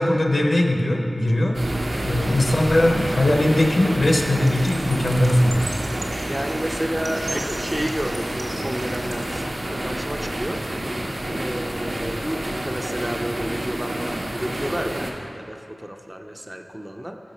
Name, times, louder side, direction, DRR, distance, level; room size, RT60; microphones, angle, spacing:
voice 1, 0.0-1.6 2.0-5.8, left 1 dB, 60° left, 2 dB, 0.8 m, -20 dB
sound 1, 1.5-15.1, right 1 dB, 70° right, 0.9 m, -29 dB
voice 2, 1.9-2.4 6.3-10.6 11.3-17.2, equal, 15° right, 4 dB, 0.4 m, -31 dB
sound 2, 4.2-9.5, right 1 dB, 55° right, 1.4 m, -38 dB
6.3 x 5.8 x 5.2 m, 2.5 s
wide cardioid pair, 60°, 0 cm